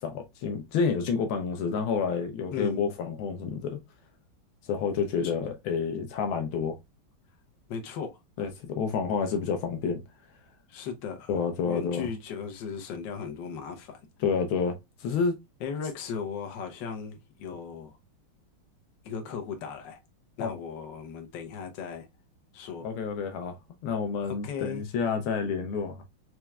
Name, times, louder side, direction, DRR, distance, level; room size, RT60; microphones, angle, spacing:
voice 1, 0.0-3.8 4.6-6.8 8.4-10.0 11.3-12.1 14.2-15.3 20.4-20.5 22.8-23.6 23.8-26.0, left 5 dB, 80° left, 1.5 m, -29 dB
voice 2, 2.5-2.9 7.7-8.1 10.7-11.3 11.6-14.0 15.6-17.9 19.0-20.0 20.4-22.1 22.5-22.9 24.3-24.8, left 6 dB, 65° left, 1.4 m, -37 dB
4.5 x 3.0 x 2.2 m
omnidirectional pair, 2.3 m